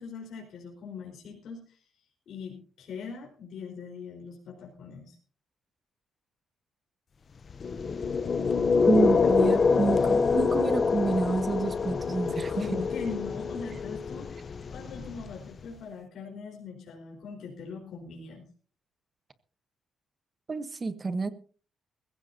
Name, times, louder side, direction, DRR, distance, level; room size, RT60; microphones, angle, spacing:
voice 1, 0.0-1.8 2.3-5.2 12.5-18.4, left 5 dB, 65° left, -1 dB, 4.3 m, -41 dB
sound 1, 7.5-15.6, left 5 dB, 35° left, 0.6 m, -26 dB
voice 2, 8.9-12.8 20.5-21.3, right 4 dB, 25° right, 12 dB, 1.1 m, -29 dB
21.0 x 15.5 x 2.7 m, 0.40 s
cardioid pair, 150°, 0 cm